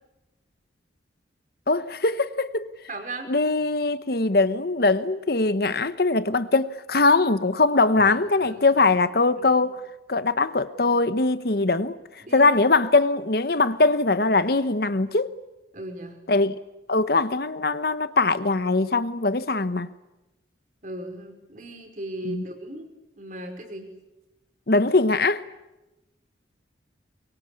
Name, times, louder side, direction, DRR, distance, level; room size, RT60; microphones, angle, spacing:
voice 1, 1.7-2.7 3.3-9.8 10.1-12.0 12.3-15.3 16.3-16.6 16.9-19.9 22.2-22.4 24.7-25.4, left 3 dB, 55° left, 1.0 m, -21 dB
voice 2, 2.9-3.3 8.0-9.0 9.4-9.6 12.2-12.5 15.7-16.2 20.8-22.9 23.1-23.9, right 1 dB, 45° right, 5.0 m, -37 dB
23.5 x 23.0 x 9.8 m
head